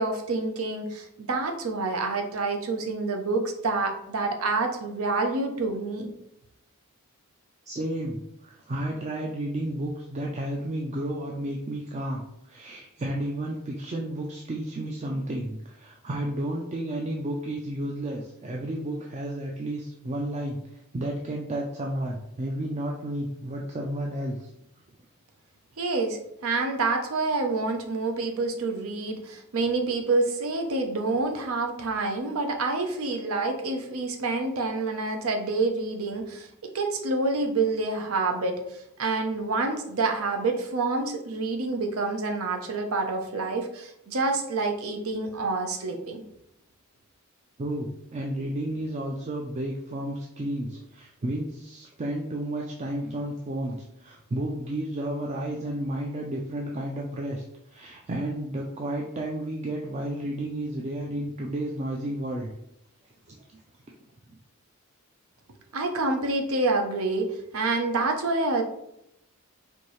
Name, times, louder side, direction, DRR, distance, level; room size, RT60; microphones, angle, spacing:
voice 1, 0.0-6.1 25.8-46.2 65.7-68.6, right 3 dB, 85° right, 4 dB, 0.7 m, -27 dB
voice 2, 7.7-20.6 20.9-24.5 47.6-62.5 63.3-63.6, right 1 dB, 30° right, -1 dB, 0.4 m, -32 dB
4.4 x 2.7 x 3.1 m, 0.80 s
head